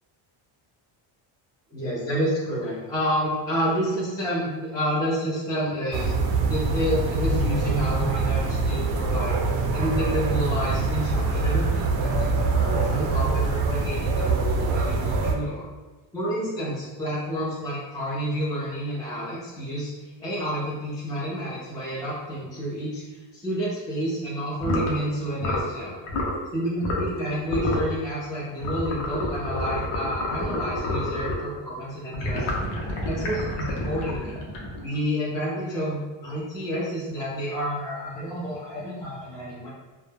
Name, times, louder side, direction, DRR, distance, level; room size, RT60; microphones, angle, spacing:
voice 1, 1.7-6.1 6.4-9.4 9.7-15.7 16.1-23.0 23.3-26.0 26.5-32.5 33.0-34.4 34.8-39.7, equal, 10° left, -8 dB, 0.3 m, -29 dB
sound 1, 5.9-15.3, right 3 dB, 75° right, 0.5 m, -24 dB
sound 2, 24.6-24.9 25.4-25.7 26.1-26.4 26.8-27.2 27.5-27.9 28.6-31.5 32.1-35.0, left 1 dB, 80° left, 0.7 m, -28 dB
2.1 x 2.1 x 3.2 m, 1.2 s
cardioid pair, 150°, 48 cm